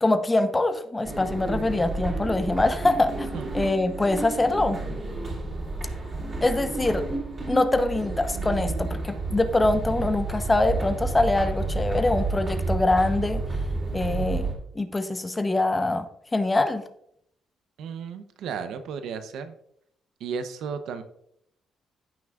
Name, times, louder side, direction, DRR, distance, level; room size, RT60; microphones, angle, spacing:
voice 1, 0.0-3.3 3.5-4.8 6.4-7.0 7.5-13.4 13.9-16.1 16.3-16.8, left 2 dB, 20° left, 9 dB, 0.9 m, -24 dB
sound 1, 1.0-14.5, right 3 dB, 35° right, 3.2 m, -30 dB
voice 2, 17.8-19.6 20.2-21.0, right 6 dB, 80° right, 9 dB, 0.8 m, -34 dB
15.0 x 6.1 x 2.5 m, 0.73 s
cardioid pair, 90°, 0 cm